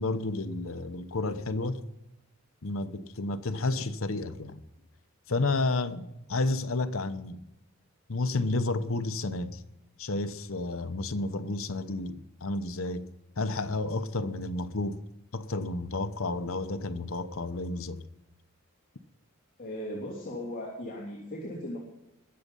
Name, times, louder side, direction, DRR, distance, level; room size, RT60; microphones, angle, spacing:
voice 1, 0.0-1.8 2.6-4.6 5.3-7.4 8.1-9.6 10.0-13.1 13.4-15.0 15.3-18.0, left 2 dB, 70° left, 0.9 m, -31 dB
voice 2, 19.6-21.8, left 1 dB, 40° left, 3.2 m, -37 dB
21.0 x 7.4 x 5.4 m
head